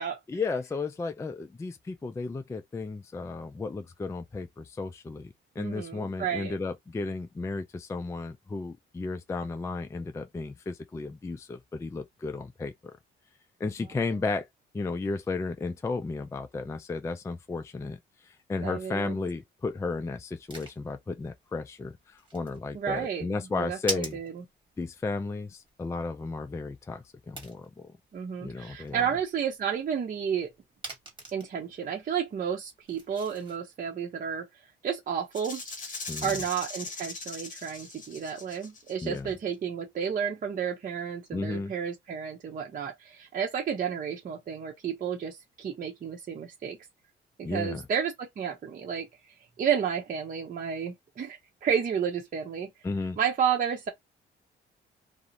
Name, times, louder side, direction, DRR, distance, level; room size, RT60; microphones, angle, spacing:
voice 1, 0.3-12.7 13.6-14.5 14.7-24.2 24.8-27.9 28.4-29.1 36.1-36.4 39.0-39.3 41.3-41.7 47.4-47.8 52.8-53.2, left 3 dB, 15° left, 0.3 m, -34 dB
voice 2, 5.6-6.5 18.6-19.2 22.7-24.4 28.1-30.5 31.3-34.5 34.8-35.6 36.2-46.8 47.4-49.1 49.6-52.7 53.2-53.9, right 7 dB, 45° right, 0.7 m, -31 dB
sound 1, 20.2-33.6, right 2 dB, 25° right, 1.4 m, -45 dB
Rattle (instrument), 35.3-39.2, left 3 dB, 40° left, 1.0 m, -40 dB
2.4 x 2.1 x 2.8 m
cardioid pair, 90°, 20 cm